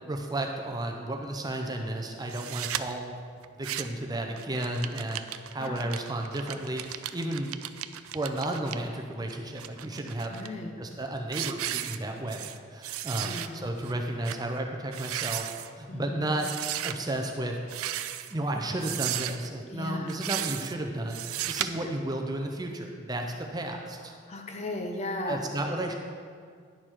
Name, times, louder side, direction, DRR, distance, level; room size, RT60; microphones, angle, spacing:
voice 1, 0.1-3.2 3.6-7.5 8.1-10.4 10.8-15.5 15.8-16.5 16.8-17.6 18.3-24.1 25.3-25.9, right 1 dB, 20° right, 2 dB, 0.5 m, -33 dB
sound 1, 2.3-2.8 3.4-4.0 4.4-8.8 9.3-10.5 10.9-11.1 11.3-12.6 12.8-13.5 13.8-13.9 14.2-14.4 14.9-15.7 16.4-16.9 17.6-18.3 18.8-19.5 20.1-20.7 21.1-21.7, right 12 dB, 85° right, 0.4 m, -35 dB
voice 2, 10.3-10.7 13.2-13.6 15.9-16.3 19.7-20.3 21.8-21.9 24.3-25.5, left 2 dB, 30° left, 3 dB, 0.7 m, -36 dB
10.5 x 6.5 x 4.4 m, 2.1 s
head